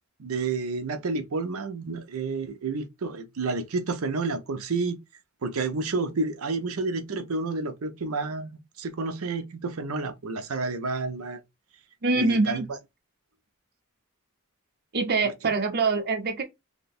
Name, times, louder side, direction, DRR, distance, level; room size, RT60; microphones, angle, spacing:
voice 1, 0.2-5.0 5.4-8.5 8.8-11.4 12.2-12.6, right 3 dB, 85° right, 0.6 m, -30 dB
voice 2, 12.0-12.7 14.9-16.4, right 3 dB, 50° right, 0.8 m, -24 dB
2.8 x 2.2 x 4.1 m
head